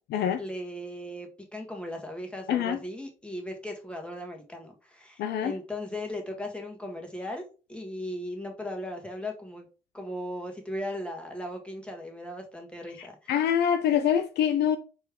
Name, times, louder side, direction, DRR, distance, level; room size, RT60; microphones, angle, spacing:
voice 1, 0.4-7.4 7.7-9.7 9.9-13.3, left 1 dB, 5° left, 1.8 m, -37 dB
voice 2, 2.5-2.8 5.2-5.6 13.3-14.8, left 9 dB, 60° left, 0.5 m, -25 dB
4.4 x 3.3 x 3.5 m
hypercardioid pair, 45°, 20 cm